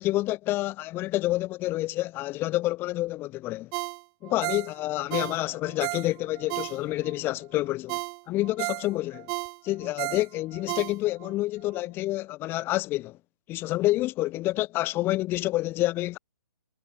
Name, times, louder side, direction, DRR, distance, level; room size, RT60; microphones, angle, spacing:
voice 1, 0.0-3.7 4.2-8.0 8.3-9.3 9.6-13.2 13.5-16.2, left 17 dB, 15° left, 2.6 m, -28 dB
Ringtone, 3.7-7.2 7.6-7.7 7.9-11.3 11.7-11.8, right 37 dB, 20° right, 2.3 m, -34 dB
hypercardioid pair, 160°, 13 cm